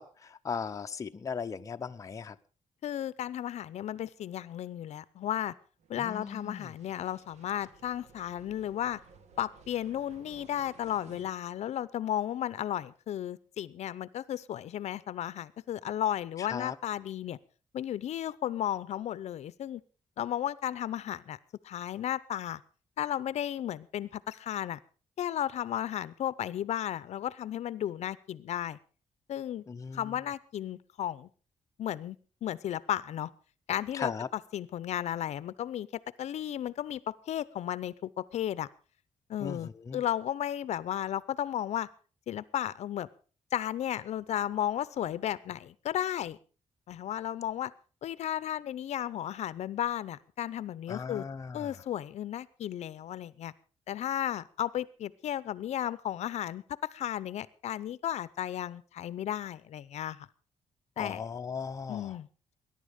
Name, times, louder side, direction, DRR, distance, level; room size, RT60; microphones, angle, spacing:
voice 1, 0.0-2.4 6.0-6.7 16.4-16.8 29.7-30.1 33.9-34.3 39.4-40.0 50.9-51.7 61.0-62.2, left 6 dB, 25° left, 0.6 m, -38 dB
voice 2, 2.8-5.5 5.9-9.0 9.4-17.4 17.7-19.8 20.2-21.4 21.6-22.6 23.0-24.8 25.2-28.8 29.3-29.6 29.9-31.3 31.8-33.3 33.7-35.9 36.2-37.0 37.3-38.7 39.3-41.9 42.3-43.1 43.5-46.4 46.9-47.7 48.0-51.3 51.5-53.5 53.9-56.6 56.9-60.3 61.0-61.2 61.9-62.3, left 11 dB, 65° left, 0.7 m, -34 dB
sound 1, 5.8-11.3, right 6 dB, 70° right, 1.5 m, -57 dB
20.5 x 11.0 x 5.1 m
cardioid pair, 155°, 12 cm